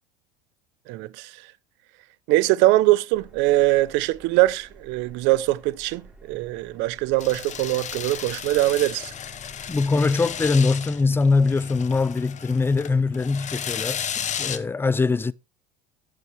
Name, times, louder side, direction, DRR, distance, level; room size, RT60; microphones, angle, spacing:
voice 1, 0.9-1.3 2.3-9.1, right 17 dB, 65° right, 0.7 m, -22 dB
Subway metro underground, 3.1-10.6, right 2 dB, 5° right, 4.0 m, -51 dB
sound 1, 7.2-14.6, left 8 dB, 35° left, 1.0 m, -34 dB
voice 2, 9.7-15.3, left 4 dB, 10° left, 0.4 m, -22 dB
11.0 x 7.7 x 2.9 m
hypercardioid pair, 85°, 21 cm